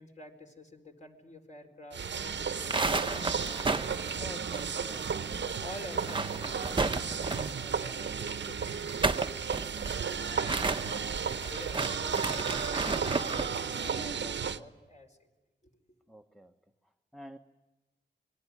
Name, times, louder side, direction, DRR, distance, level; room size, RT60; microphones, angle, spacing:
voice 1, 0.0-5.1 5.4-9.9 10.2-13.2 13.8-15.3 15.6-15.7, left 1 dB, 40° left, 4 dB, 4.4 m, -49 dB
sound 1, 1.9-14.6, right 6 dB, 65° right, 0.9 m, -34 dB
sound 2, 2.5-5.1 5.4-5.5 5.9-7.6 8.7-13.6, right 3 dB, 25° right, 0.9 m, -33 dB
sound 3, 5.3-5.7 6.3-6.8 7.3-7.8 9.2-9.3, left 2 dB, 80° left, 4.5 m, -54 dB
voice 2, 16.1-16.5 16.8-17.4, equal, ahead, 4 dB, 1.1 m, -51 dB
26.5 x 22.0 x 9.8 m, 1.1 s
wide cardioid pair, 80°, 20 cm